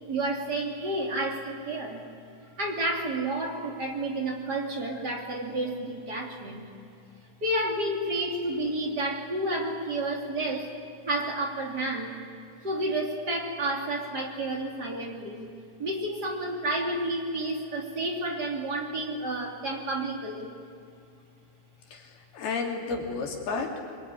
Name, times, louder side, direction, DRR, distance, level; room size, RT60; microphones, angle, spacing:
voice 1, 0.1-2.1 2.5-6.7 7.4-10.7 11.1-12.2 12.6-15.5 15.8-20.5, right 1 dB, 25° right, 1 dB, 2.7 m, -30 dB
voice 2, 21.9-24.0, left 4 dB, 60° left, 0 dB, 4.6 m, -32 dB
25.5 x 23.0 x 9.9 m, 2.6 s
omnidirectional pair, 5.1 m